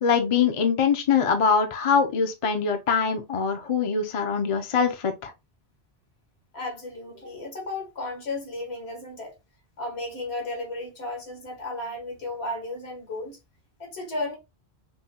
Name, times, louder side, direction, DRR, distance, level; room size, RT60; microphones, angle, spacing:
voice 1, 0.0-5.3, left 6 dB, 40° left, 0.5 m, -23 dB
voice 2, 6.5-9.4 9.8-13.4 13.8-14.4, left 2 dB, 70° left, 1.7 m, -34 dB
5.4 x 2.2 x 2.7 m
omnidirectional pair, 1.1 m